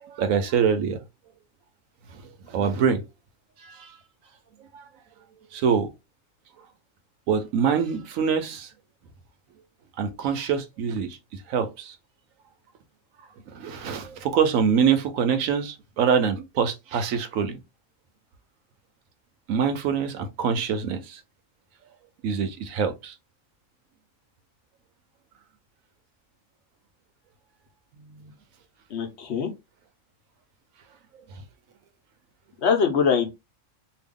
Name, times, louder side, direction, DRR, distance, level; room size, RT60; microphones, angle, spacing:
voice 1, 0.0-1.0 2.1-3.0 3.6-4.0 4.7-4.9 5.5-5.9 7.3-8.7 10.0-12.0 13.5-17.6 19.5-21.2 22.2-23.1 27.9-28.3 31.4-31.5, right 7 dB, 90° right, 1.1 m, -25 dB
voice 2, 28.9-29.5 32.6-33.3, left 6 dB, 60° left, 0.9 m, -22 dB
2.8 x 2.3 x 3.6 m
omnidirectional pair, 1.4 m